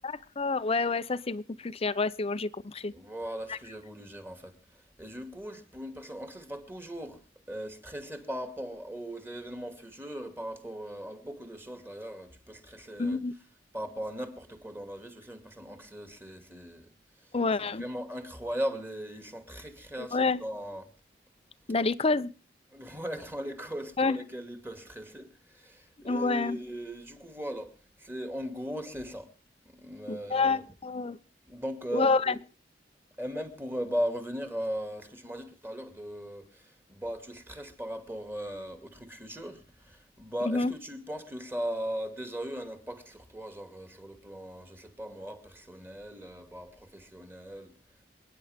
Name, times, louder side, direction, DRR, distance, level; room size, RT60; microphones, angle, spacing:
voice 1, 0.0-2.9 3.5-3.6 13.0-13.3 17.3-17.8 20.0-20.4 21.7-22.3 24.0-24.2 26.0-26.6 30.1-31.2 31.9-32.3 40.4-40.7, left 3 dB, 35° left, 0.7 m, -28 dB
voice 2, 2.9-4.5 5.0-7.2 7.5-13.2 13.7-16.9 17.6-20.9 22.7-29.3 29.7-30.6 31.5-32.4 33.2-47.7, equal, 15° right, 2.4 m, -38 dB
28.0 x 9.9 x 3.6 m
head